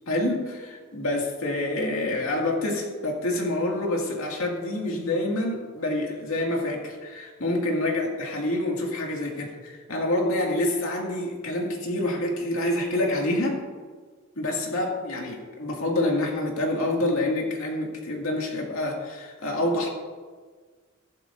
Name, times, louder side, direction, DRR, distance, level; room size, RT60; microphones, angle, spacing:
voice 1, 0.1-13.6 14.4-19.9, left 1 dB, 85° left, -1 dB, 2.2 m, -27 dB
14.5 x 11.5 x 2.6 m, 1.5 s
head